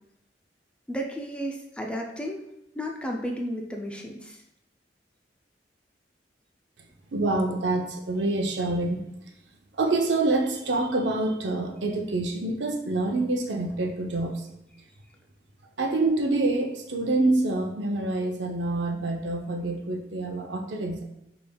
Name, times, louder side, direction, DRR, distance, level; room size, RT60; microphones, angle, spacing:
voice 1, 0.9-2.4 2.8-4.4, equal, 5° left, 1 dB, 0.4 m, -33 dB
voice 2, 7.1-9.0 9.8-14.5 15.8-21.0, right 2 dB, 75° right, 3 dB, 0.6 m, -26 dB
5.1 x 3.4 x 2.3 m, 0.83 s
head